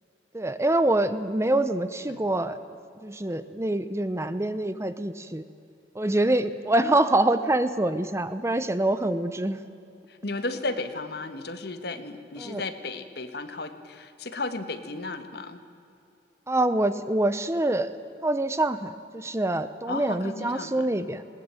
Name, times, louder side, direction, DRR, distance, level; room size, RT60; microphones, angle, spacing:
voice 1, 0.3-2.6 3.0-5.4 5.9-9.6 12.4-12.6 16.5-17.9 18.2-21.2, right 1 dB, 15° right, 12 dB, 0.7 m, -25 dB
voice 2, 10.1-15.6 19.9-20.9, left 2 dB, 60° left, 9 dB, 1.5 m, -34 dB
20.5 x 19.0 x 9.0 m, 2.6 s
head